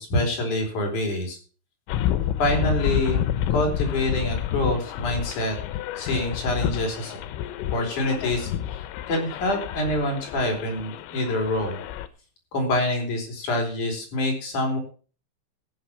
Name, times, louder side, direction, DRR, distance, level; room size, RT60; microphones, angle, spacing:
voice 1, 0.0-1.4 2.4-3.3 3.5-5.6 6.0-7.2 7.7-8.8 9.1-11.8 12.5-14.8, left 1 dB, 40° left, 2 dB, 5.2 m, -26 dB
Metor sortie, 1.9-12.1, left 11 dB, 85° left, 3.5 m, -29 dB
15.0 x 8.4 x 5.8 m, 0.39 s
omnidirectional pair, 6.0 m